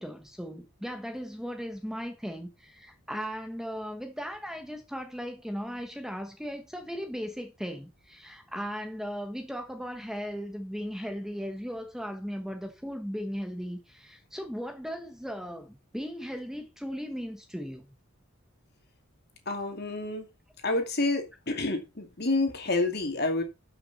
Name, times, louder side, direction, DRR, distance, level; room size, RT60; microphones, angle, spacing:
voice 1, 0.0-17.8, equal, ahead, 1.2 m, -37 dB
voice 2, 19.5-20.3 20.6-23.4, left 2 dB, 45° left, 2.5 m, -28 dB
12.0 x 6.1 x 4.2 m
head